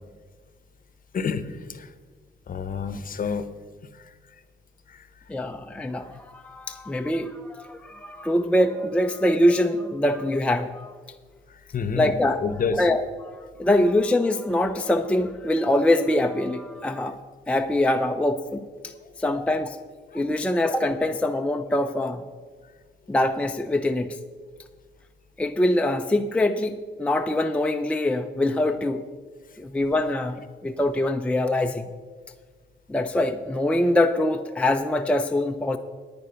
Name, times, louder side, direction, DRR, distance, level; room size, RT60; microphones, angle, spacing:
voice 1, 1.1-1.9 2.5-3.5 3.9-4.1 4.9-5.1 11.5-12.2 12.4-12.9 19.0-19.1 20.1-20.3, left 5 dB, 45° left, 12 dB, 0.8 m, -29 dB
voice 2, 5.3-10.9 11.9-12.4 12.8-17.2 17.5-18.7 19.2-19.8 20.1-22.2 23.1-24.2 25.4-29.0 29.6-30.4 30.6-31.8 32.9-35.8, left 1 dB, 5° left, 5 dB, 0.5 m, -24 dB
9.4 x 9.3 x 5.7 m, 1.5 s
cardioid pair, 90°, 20 cm